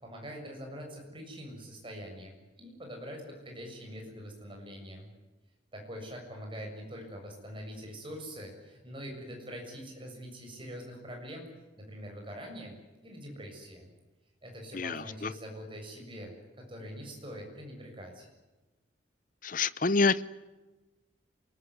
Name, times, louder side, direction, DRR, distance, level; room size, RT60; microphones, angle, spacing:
voice 1, 0.0-5.1 5.7-11.5 11.8-13.9 14.4-18.3, equal, 25° right, 7.2 m, -44 dB
voice 2, 14.7-15.3 19.4-20.2, left 4 dB, 45° left, 0.8 m, -27 dB
27.5 x 20.5 x 9.6 m
head